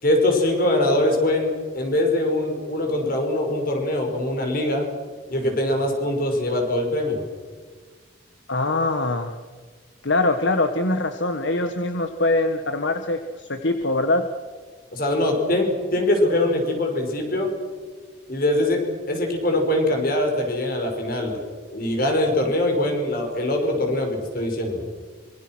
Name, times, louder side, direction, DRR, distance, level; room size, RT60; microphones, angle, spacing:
voice 1, 0.0-4.9 5.3-7.2 14.9-17.5 18.3-18.8 19.1-21.4 21.7-24.8, left 1 dB, 45° left, 3 dB, 5.9 m, -22 dB
voice 2, 8.5-9.4 10.0-14.3, left 2 dB, 65° left, 7 dB, 1.5 m, -23 dB
26.0 x 26.0 x 6.2 m, 1.5 s
head